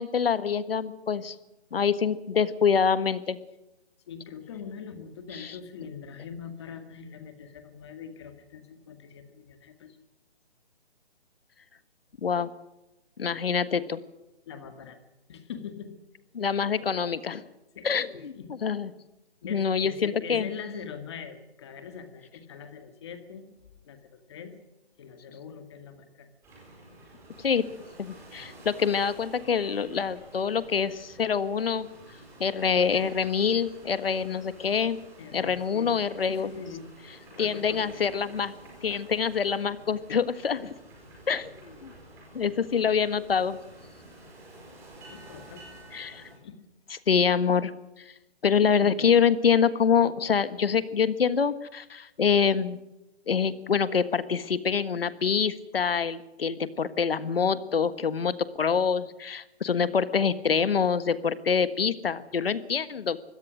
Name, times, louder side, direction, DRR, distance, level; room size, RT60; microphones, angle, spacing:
voice 1, 0.0-1.3 1.7-3.4 12.2-12.5 13.2-14.0 16.3-17.4 17.8-18.3 18.6-18.9 19.5-20.5 27.4-27.6 28.0-31.9 32.4-35.0 35.3-36.5 37.4-38.5 38.8-40.7 41.3-41.9 42.3-43.6 45.9-46.2 47.1-47.7 48.4-52.8 53.3-63.2, left 6 dB, 60° left, 14 dB, 1.5 m, -25 dB
voice 2, 4.1-10.0 14.5-15.0 15.3-15.9 17.7-17.9 18.1-18.5 19.4-23.5 23.9-24.6 25.0-26.3 35.2-36.9 37.2-37.9 42.7-42.9 45.1-45.6 46.3-46.6, left 7 dB, 25° left, 8 dB, 1.9 m, -42 dB
sound 1, 26.4-46.4, right 1 dB, 10° right, 4.7 m, -50 dB
25.0 x 16.5 x 6.3 m, 0.95 s
hypercardioid pair, 170°, 32 cm